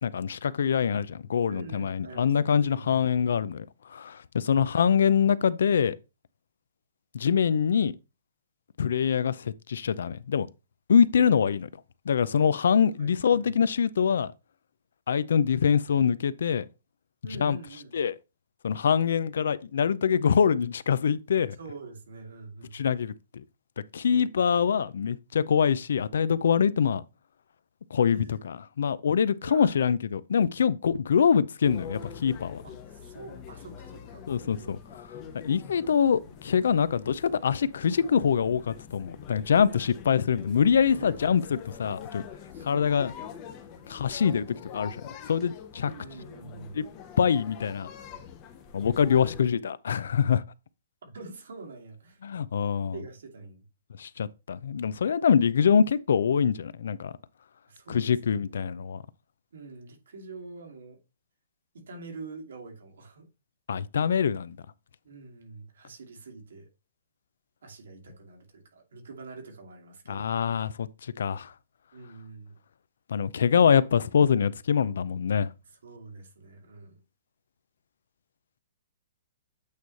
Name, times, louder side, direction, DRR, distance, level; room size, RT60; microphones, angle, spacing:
voice 1, 0.0-3.7 3.9-6.0 7.1-7.9 8.8-10.5 10.9-11.7 12.1-14.3 15.1-16.7 17.4-17.6 17.9-18.1 18.6-21.6 22.7-23.1 23.9-27.0 27.9-32.6 34.3-34.8 35.4-42.2 42.6-43.1 43.9-45.0 45.3-45.9 46.7-46.8 47.2-47.9 48.7-50.4 52.2-52.9 54.0-57.1 57.9-59.0 63.7-64.6 70.1-70.9 71.2-71.5 73.1-75.5, left 7 dB, 70° left, 0.5 m, -24 dB
voice 2, 1.5-3.0 4.4-4.7 13.0-13.5 17.2-17.9 21.6-22.8 24.1-24.6 28.1-28.4 29.4-29.7 32.6-35.0 40.9-41.3 42.5-42.8 43.1-43.2 43.9-44.4 45.8-46.8 49.3-49.5 51.0-52.2 52.9-53.7 57.7-58.6 59.5-61.0 61.7-63.3 65.0-66.7 67.6-70.6 71.9-72.6 75.7-76.9, right 3 dB, 80° right, 2.4 m, -45 dB
sound 1, 31.6-49.4, left 8 dB, 20° left, 0.8 m, -45 dB
8.4 x 3.2 x 4.0 m
hypercardioid pair, 180°, 0 cm